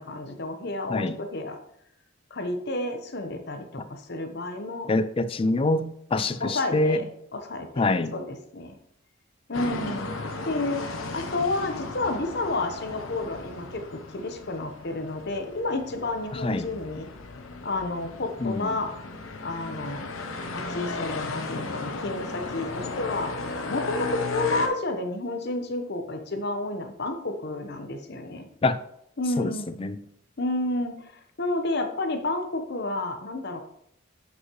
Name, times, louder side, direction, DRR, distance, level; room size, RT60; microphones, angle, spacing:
voice 1, 0.0-1.6 2.3-4.9 6.4-7.0 7.3-8.7 9.5-10.1 10.4-10.9 11.1-17.1 17.6-18.9 19.4-20.3 20.5-28.5 29.2-29.7 30.4-31.1 31.4-33.6, left 2 dB, 55° left, 6 dB, 0.9 m, -30 dB
voice 2, 4.9-7.0 7.8-8.1 16.3-16.7 18.4-18.8 28.6-28.8 29.4-30.0, left 2 dB, 25° left, 13 dB, 0.3 m, -25 dB
sound 1, 9.5-24.7, left 3 dB, 80° left, 1.0 m, -35 dB
9.6 x 5.5 x 3.1 m, 0.74 s
head